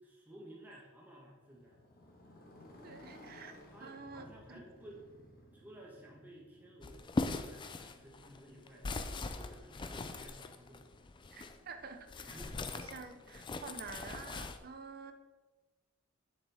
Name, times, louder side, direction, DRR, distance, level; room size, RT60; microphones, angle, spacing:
voice 1, 0.0-1.8 3.7-5.0 5.5-8.9 9.4-11.0 12.3-12.9, right 1 dB, 10° right, -3 dB, 1.1 m, -54 dB
Motorcycle, 1.4-9.5, left 1 dB, 45° left, 1.4 m, -58 dB
voice 2, 2.8-4.6 11.3-12.4 12.7-15.1, right 4 dB, 45° right, 8 dB, 0.6 m, -49 dB
sound 1, 6.8-11.6 12.1-14.6, left 3 dB, 25° left, 0.4 m, -40 dB
7.5 x 6.8 x 3.5 m, 1.2 s
head